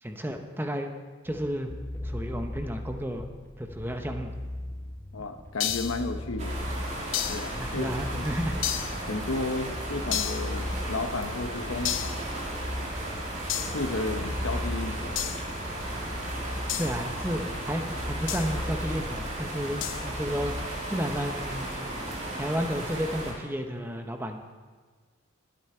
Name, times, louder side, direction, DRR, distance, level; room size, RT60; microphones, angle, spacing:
voice 1, 0.0-0.9 1.2-1.7 2.0-3.3 3.6-4.3 7.5-8.6 16.8-20.6 20.9-21.7 22.4-24.4, equal, 10° right, 4 dB, 0.9 m, -32 dB
sound 1, 1.3-20.6, left 1 dB, 10° left, 0.3 m, -38 dB
voice 2, 5.1-6.6 7.3-8.3 9.1-12.2 13.7-15.2, left 2 dB, 80° left, 7 dB, 1.1 m, -33 dB
sound 2, 5.6-6.1 7.1-7.5 8.6-9.0 10.1-10.5 11.8-12.2 13.5-13.8 15.2-15.5 16.7-17.0 18.3-18.6 19.8-20.1, left 12 dB, 60° left, 0.6 m, -31 dB
sound 3, 6.4-23.3, right 1 dB, 35° right, 3.0 m, -35 dB
23.5 x 8.4 x 4.4 m, 1.5 s
head